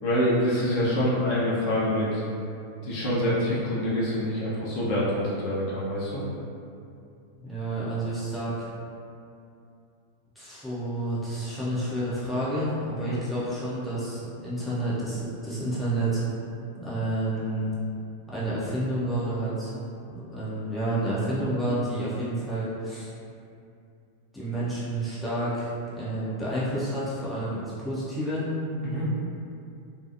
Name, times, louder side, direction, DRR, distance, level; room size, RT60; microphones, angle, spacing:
voice 1, 0.0-2.2 2.8-6.2 13.0-13.2 28.8-29.1, equal, 45° left, -8 dB, 0.7 m, -26 dB
voice 2, 7.4-8.7 10.4-16.2 16.8-17.7 18.3-19.7 20.1-23.1 24.3-28.5, right 1 dB, 5° left, -11 dB, 0.7 m, -30 dB
2.7 x 2.3 x 2.5 m, 2.5 s
figure-of-eight pair, 90°, 0 cm